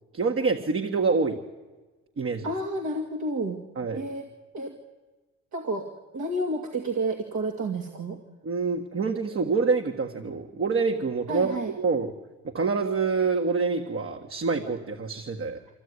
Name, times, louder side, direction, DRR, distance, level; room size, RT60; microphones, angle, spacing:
voice 1, 0.1-1.4 2.2-2.5 3.7-4.0 8.4-11.5 11.8-12.1 12.4-15.6, right 4 dB, 45° right, 3 dB, 1.7 m, -26 dB
voice 2, 2.4-3.6 3.9-4.3 4.5-4.8 5.5-8.2 11.3-11.7, right 2 dB, 70° right, 2 dB, 2.4 m, -30 dB
24.5 x 15.5 x 9.8 m, 1.3 s
cardioid pair, 90°, 30 cm